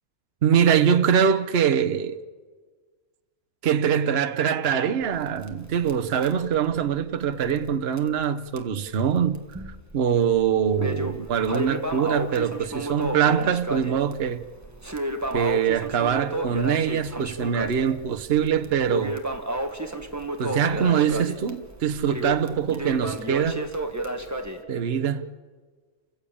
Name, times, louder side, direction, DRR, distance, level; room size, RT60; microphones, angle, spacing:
voice 1, 0.4-2.2 3.6-9.5 9.9-14.4 15.3-19.2 20.4-23.7 24.7-25.2, right 8 dB, 50° right, 1.1 m, -23 dB
Crackle, 5.0-7.7 8.0-8.1 8.6-8.7 9.3-10.0 10.3-24.6, right 1 dB, 10° right, 1.7 m, -32 dB
29.5 x 15.5 x 8.6 m
omnidirectional pair, 1.5 m